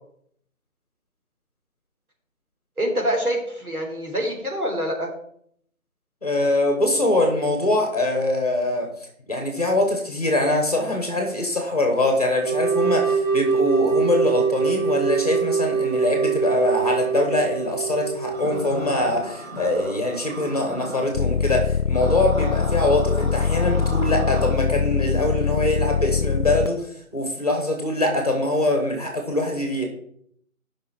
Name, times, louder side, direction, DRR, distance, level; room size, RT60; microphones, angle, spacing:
voice 1, 2.8-5.1, equal, 85° right, 1 dB, 3.4 m, -25 dB
voice 2, 6.2-8.9 9.3-29.9, left 1 dB, 25° left, 3 dB, 1.6 m, -23 dB
sound 1, 12.4-19.2, right 6 dB, 15° right, 2.6 m, -24 dB
sound 2, 18.3-21.1 21.9-24.6, equal, 50° right, 2.3 m, -34 dB
sound 3, 21.1-26.7, left 6 dB, 80° left, 0.7 m, -23 dB
11.5 x 5.7 x 4.5 m, 0.67 s
figure-of-eight pair, 175°, 43 cm